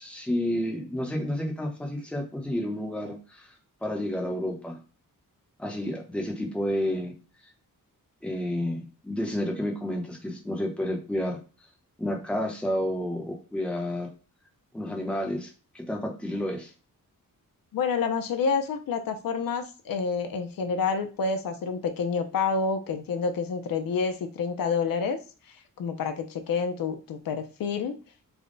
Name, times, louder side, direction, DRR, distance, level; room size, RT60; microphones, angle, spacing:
voice 1, 0.0-4.8 5.6-7.1 8.2-11.4 12.0-14.1 14.7-16.7, left 1 dB, 5° left, 1 dB, 0.8 m, -30 dB
voice 2, 17.7-25.2 25.8-28.0, left 5 dB, 75° left, 6 dB, 0.6 m, -28 dB
3.5 x 2.2 x 3.8 m, 0.34 s
wide cardioid pair, 140°, 34 cm